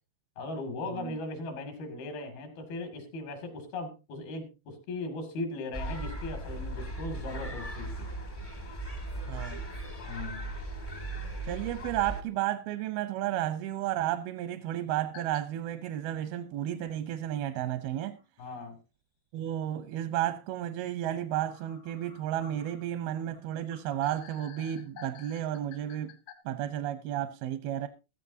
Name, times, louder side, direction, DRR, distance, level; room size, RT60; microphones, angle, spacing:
voice 1, 0.4-8.1 10.1-10.5 18.4-18.8 26.5-26.6, left 2 dB, 80° left, 4.3 m, -38 dB
sound 1, 5.7-12.2, right 1 dB, 35° left, 0.5 m, -38 dB
voice 2, 9.3-9.6 11.4-18.2 19.3-26.2 26.5-27.9, right 12 dB, 85° right, 2.7 m, -32 dB
sound 2, 15.1-15.4 15.9-16.0 17.4-17.5 18.2-18.3 18.5-18.6 21.4-26.3, left 7 dB, 55° left, 1.0 m, -52 dB
16.0 x 13.5 x 2.7 m
omnidirectional pair, 4.3 m